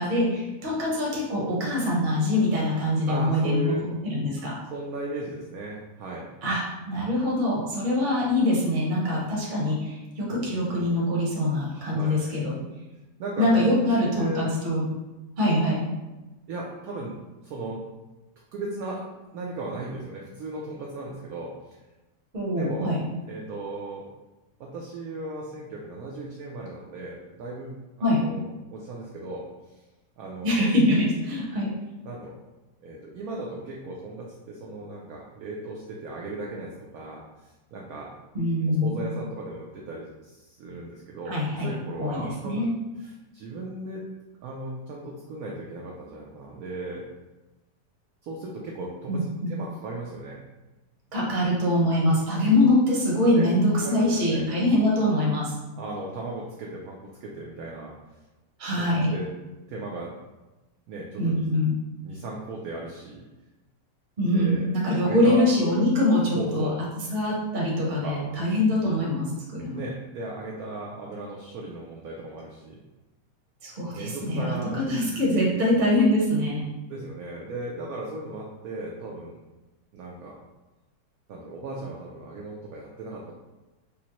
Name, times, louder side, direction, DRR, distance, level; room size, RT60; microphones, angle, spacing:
voice 1, 0.0-3.7 4.0-4.5 6.4-6.6 6.9-12.6 13.4-14.8 15.4-15.8 22.3-23.0 28.0-28.2 30.4-31.7 38.3-39.0 41.3-41.7 42.0-42.7 49.1-49.5 51.1-55.5 58.6-59.1 61.2-61.7 64.2-66.7 67.1-69.8 73.6-74.6 74.9-76.6, left 1 dB, 40° right, -4 dB, 0.8 m, -24 dB
voice 2, 3.1-3.9 4.7-6.3 10.3-10.9 11.7-12.2 13.2-13.6 14.1-14.5 16.5-17.9 18.5-19.0 19.3-21.8 22.5-23.0 23.3-24.1 24.6-29.8 30.2-30.8 32.0-32.3 32.8-38.2 38.7-42.7 43.0-44.1 44.4-47.1 48.2-50.4 53.3-53.5 53.8-54.4 55.7-57.9 58.8-59.3 59.7-60.2 60.9-61.5 62.0-63.3 64.3-64.7 65.0-65.4 66.3-67.1 68.0-68.2 69.7-72.8 73.9-75.2 76.9-79.4 79.9-80.4 81.3-83.3, right 2 dB, 75° right, -2 dB, 0.8 m, -36 dB
5.1 x 2.0 x 2.9 m, 1.1 s
omnidirectional pair, 2.0 m